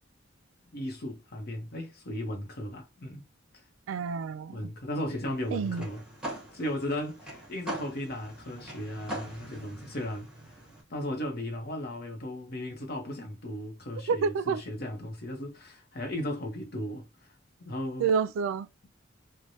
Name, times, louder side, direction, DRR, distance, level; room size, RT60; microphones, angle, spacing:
voice 1, 0.7-3.2 4.5-6.0 6.5-10.3 10.9-17.1 17.6-18.1, left 1 dB, 50° left, 0.9 m, -36 dB
voice 2, 3.9-4.7 5.5-5.9 14.1-14.6 18.0-18.7, right 6 dB, 75° right, 0.3 m, -28 dB
sound 1, 5.3-10.8, right 1 dB, 5° right, 1.0 m, -42 dB
3.2 x 2.1 x 2.6 m
head